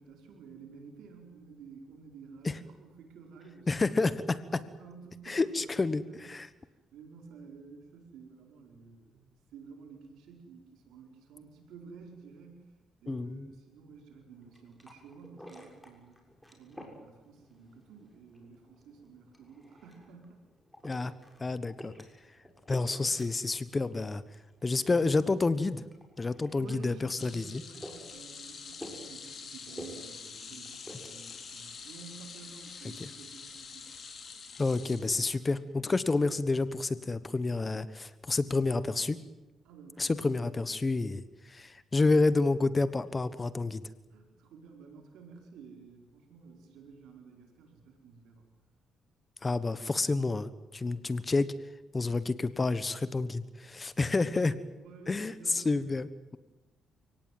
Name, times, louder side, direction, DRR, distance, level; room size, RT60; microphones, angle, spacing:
voice 1, 0.0-4.0 4.5-12.7 13.0-16.2 16.5-20.4 22.3-22.4 26.5-33.9 39.6-40.6 44.1-48.5 50.8-51.0 54.0-54.5 54.8-55.9, right 5 dB, 85° right, 3 dB, 4.7 m, -52 dB
voice 2, 3.7-4.6 5.3-6.5 13.1-13.4 20.8-21.1 21.4-21.9 22.7-24.2 24.6-25.8 26.2-27.6 33.0-33.1 34.6-39.2 40.0-43.9 49.4-51.5 51.9-54.5 55.1-56.4, left 3 dB, 25° left, 14 dB, 1.3 m, -29 dB
sound 1, 14.3-32.1, equal, ahead, 6.6 m, -52 dB
sound 2, 27.1-35.6 36.0-36.2 37.4-37.5, left 5 dB, 50° left, 5.4 m, -46 dB
29.5 x 18.0 x 9.4 m, 1.1 s
cardioid pair, 90°, 0 cm